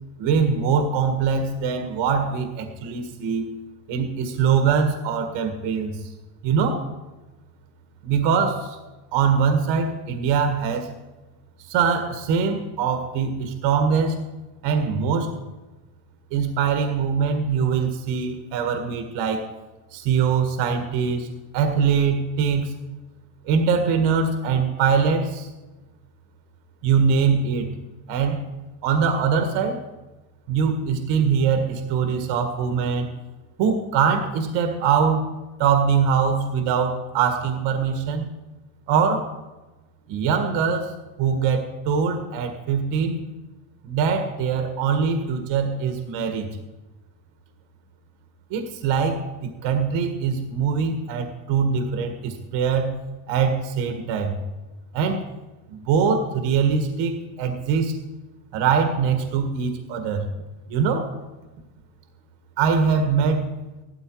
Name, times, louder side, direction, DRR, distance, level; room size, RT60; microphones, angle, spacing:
voice 1, 0.2-3.5 3.9-6.0 6.4-6.8 8.0-8.8 9.1-10.9 11.6-14.2 14.6-15.3 16.3-19.5 19.9-21.3 21.5-22.7 23.5-25.5 26.8-27.7 28.1-28.4 28.8-29.8 30.5-33.1 33.6-35.3 35.6-38.3 38.9-39.3 40.1-40.9 41.2-43.3 43.8-46.5 48.5-52.9 53.3-54.4 54.9-55.3 55.7-57.9 58.5-60.3 60.7-61.1 62.6-63.5, right 6 dB, 65° right, 6 dB, 1.8 m, -22 dB
15.5 x 12.5 x 4.7 m, 1.1 s
cardioid pair, 125°, 48 cm